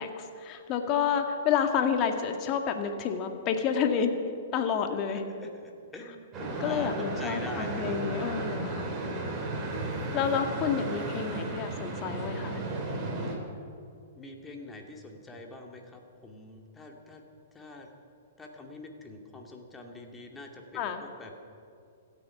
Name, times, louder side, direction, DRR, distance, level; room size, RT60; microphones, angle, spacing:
voice 1, 0.0-4.2 4.5-5.2 6.6-9.0 10.1-12.6 20.7-21.1, left 7 dB, 35° left, 5 dB, 1.8 m, -29 dB
voice 2, 5.1-6.3 6.6-8.0 14.2-17.2 17.5-17.9 18.4-21.3, left 2 dB, 15° left, 2 dB, 2.4 m, -44 dB
sound 1, 6.3-13.3, right 2 dB, 25° right, 4.3 m, -34 dB
26.0 x 9.1 x 5.9 m, 2.4 s
figure-of-eight pair, 110°, 0 cm